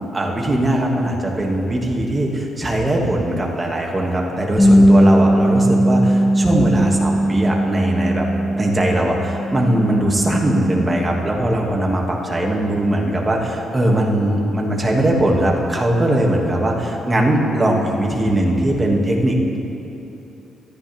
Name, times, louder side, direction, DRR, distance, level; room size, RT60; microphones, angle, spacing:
voice 1, 0.1-8.3 8.6-19.6, right 1 dB, 20° right, -1 dB, 2.6 m, -20 dB
Bass guitar, 4.6-10.8, equal, 15° left, 2.7 m, -17 dB
23.5 x 14.0 x 3.7 m, 2.9 s
cardioid pair, 90°, 0 cm